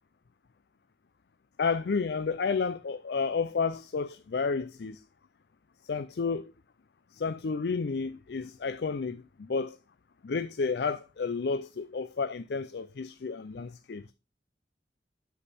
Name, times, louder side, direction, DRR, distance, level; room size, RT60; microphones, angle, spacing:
voice 1, 1.6-5.0 5.8-6.5 7.1-9.8 10.2-14.1, left 5 dB, 65° left, 0.4 m, -31 dB
8.4 x 7.3 x 4.1 m
head